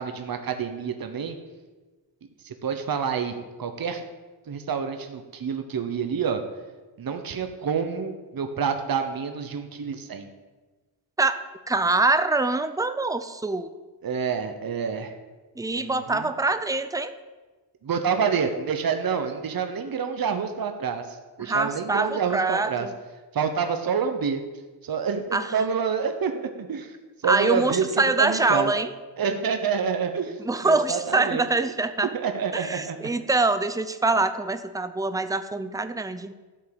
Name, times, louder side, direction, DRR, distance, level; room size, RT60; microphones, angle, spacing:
voice 1, 0.0-1.4 2.4-4.0 4.5-6.4 7.0-10.3 14.0-15.1 15.8-16.3 17.8-22.9 23.3-24.4 24.8-26.9 27.2-27.8 28.2-28.7 29.2-31.5 32.1-33.1, right 6 dB, 55° right, 7 dB, 1.1 m, -28 dB
voice 2, 11.7-13.7 15.6-17.1 21.4-22.9 25.3-25.6 27.2-28.9 30.4-32.1 32.5-36.3, right 3 dB, 10° right, 10 dB, 0.6 m, -24 dB
13.5 x 5.6 x 8.7 m, 1.3 s
wide cardioid pair, 150°, 43 cm